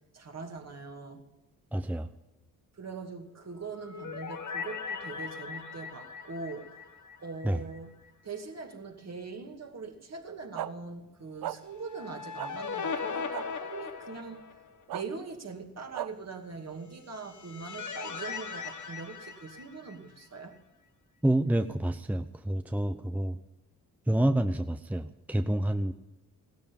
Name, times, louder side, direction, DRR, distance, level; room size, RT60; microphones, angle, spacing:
voice 1, 0.1-1.2 2.7-6.9 7.2-7.9 8.2-14.4 14.9-20.5, right 4 dB, 45° right, 4 dB, 2.4 m, -42 dB
voice 2, 1.7-2.1 7.4-7.6 21.2-23.4 24.1-25.9, right 1 dB, 5° right, 9 dB, 0.7 m, -28 dB
sound 1, 3.5-7.8 8.1-8.2 11.7-14.8 16.9-20.3, left 5 dB, 55° left, 1.6 m, -39 dB
sound 2, 10.5-10.7 11.4-11.6 12.4-12.5 13.3-13.4 14.9-15.0 15.9-16.1, right 13 dB, 80° right, 0.6 m, -34 dB
15.5 x 13.0 x 5.4 m, 1.0 s
cardioid pair, 65°, 35 cm